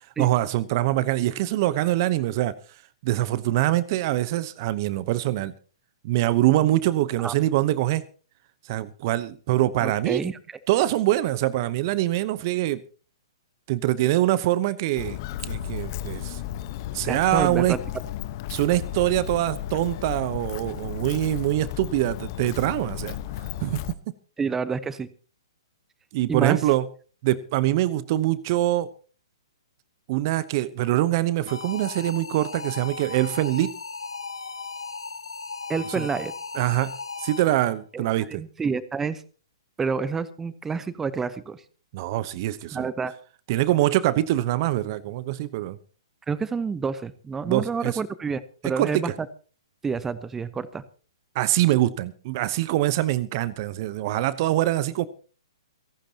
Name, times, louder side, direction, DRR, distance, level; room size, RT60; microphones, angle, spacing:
voice 1, 0.2-2.6 3.0-5.5 6.0-8.0 8.6-10.2 10.7-12.8 13.7-15.2 15.4-16.4 16.9-17.7 18.5-23.2 23.6-23.8 26.1-26.9 27.2-28.9 30.1-33.7 35.9-36.1 36.5-38.4 41.9-42.9 43.5-45.8 47.4-48.0 48.8-49.1 51.3-55.1, right 15 dB, 45° right, 17 dB, 0.9 m, -24 dB
voice 2, 9.8-10.4 17.1-17.8 24.4-25.1 26.3-26.6 35.7-36.3 37.9-38.0 38.4-39.2 39.8-41.6 42.7-43.1 46.3-49.1 49.8-50.8, right 5 dB, 10° right, 15 dB, 1.0 m, -28 dB
Walk footsteps, 15.0-23.9, left 12 dB, 45° left, 1.1 m, -34 dB
sound 1, 31.5-37.7, left 4 dB, 85° left, 1.7 m, -36 dB
29.0 x 11.5 x 2.9 m, 0.38 s
hypercardioid pair, 125°, 3 cm